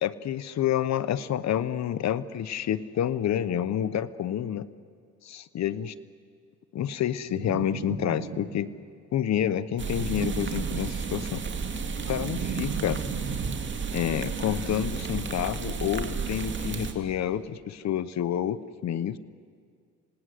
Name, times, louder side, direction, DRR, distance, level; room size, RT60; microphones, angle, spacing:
voice 1, 0.0-4.7 5.2-5.9 6.7-8.7 9.1-11.4 12.1-13.0 13.9-19.2, left 10 dB, 65° left, 15 dB, 1.0 m, -28 dB
sound 1, 7.3-8.8 9.8-11.3 11.7-14.1, right 6 dB, 70° right, 2.3 m, -37 dB
sound 2, 9.8-16.9, right 5 dB, 40° right, 2.5 m, -32 dB
27.5 x 19.0 x 8.3 m, 2.1 s
cardioid pair, 90°, 30 cm